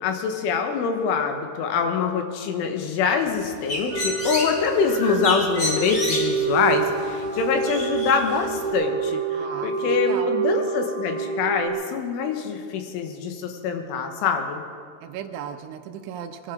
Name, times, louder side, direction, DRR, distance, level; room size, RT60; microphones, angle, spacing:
voice 1, 0.0-14.6, left 6 dB, 90° left, 5 dB, 3.8 m, -25 dB
Bird, 3.3-8.7, left 1 dB, 35° left, 1.1 m, -31 dB
sound 1, 3.9-11.7, right 6 dB, 60° right, 1.9 m, -27 dB
voice 2, 9.3-10.4 15.0-16.5, right 8 dB, 80° right, 7 dB, 3.3 m, -36 dB
22.5 x 12.0 x 5.1 m, 2.3 s
omnidirectional pair, 5.5 m